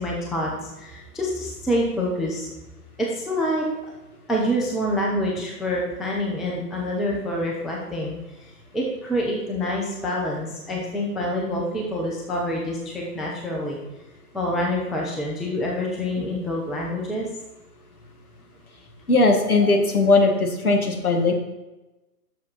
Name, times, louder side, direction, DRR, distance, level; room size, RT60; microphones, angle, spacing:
voice 1, 0.0-2.5 3.0-3.7 4.3-8.1 8.7-13.8 14.3-17.3, equal, ahead, -2 dB, 0.4 m, -26 dB
voice 2, 19.1-21.3, left 3 dB, 65° left, 3 dB, 1.8 m, -19 dB
6.6 x 6.3 x 5.4 m, 1.0 s
figure-of-eight pair, 135°, 48 cm